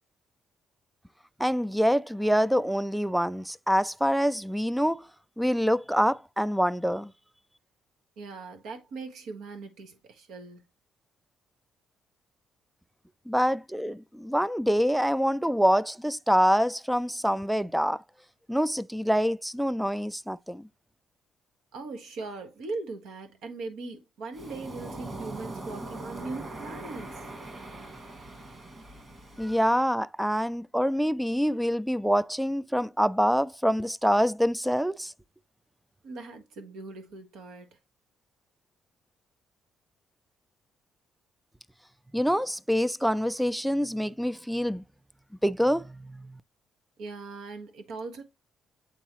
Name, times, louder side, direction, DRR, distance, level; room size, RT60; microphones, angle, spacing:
voice 1, 1.4-5.1 5.4-7.1 13.3-18.0 18.5-20.6 29.4-35.1 42.1-44.8 45.4-46.4, equal, ahead, 0.3 m, -26 dB
voice 2, 8.2-10.6 21.7-27.2 36.0-37.7 47.0-48.2, right 3 dB, 85° right, 1.4 m, -40 dB
Waves surf, 24.3-29.8, right 2 dB, 40° right, 2.1 m, -41 dB
8.1 x 3.8 x 3.0 m
cardioid pair, 90°, 0 cm